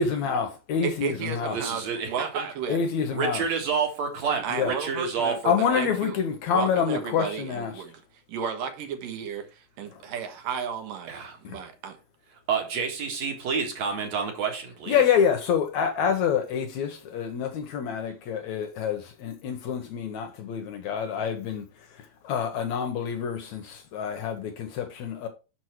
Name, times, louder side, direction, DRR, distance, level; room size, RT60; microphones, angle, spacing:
voice 1, 0.0-1.6 2.7-3.4 4.5-4.7 5.5-7.8 11.4-11.6 14.9-21.7 22.0-25.3, left 7 dB, 70° left, 2.0 m, -27 dB
voice 2, 0.8-2.8 4.4-5.4 5.8-6.2 6.5-8.0 8.3-12.0, right 7 dB, 80° right, 2.9 m, -33 dB
voice 3, 1.5-2.5 3.1-5.8 11.1-11.4 12.5-15.0, right 5 dB, 55° right, 2.7 m, -29 dB
6.3 x 6.2 x 4.5 m
omnidirectional pair, 3.9 m